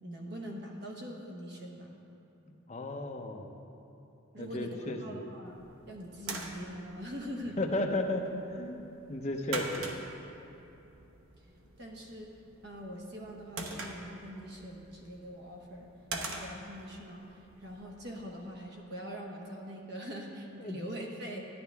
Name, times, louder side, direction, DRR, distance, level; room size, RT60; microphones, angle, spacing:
voice 1, 0.0-1.9 4.3-5.6 5.9-7.6 11.8-12.3 12.6-15.9 16.2-17.2 17.6-21.5, equal, 50° right, 0 dB, 1.1 m, -43 dB
voice 2, 2.7-3.5 4.4-5.2 7.6-8.3 8.5-8.8 9.1-9.9 20.6-20.8, left 2 dB, 35° left, 2 dB, 0.7 m, -34 dB
sound 1, 5.5-18.5, right 3 dB, 80° right, 0.9 m, -45 dB
12.0 x 9.6 x 3.5 m, 2.9 s
head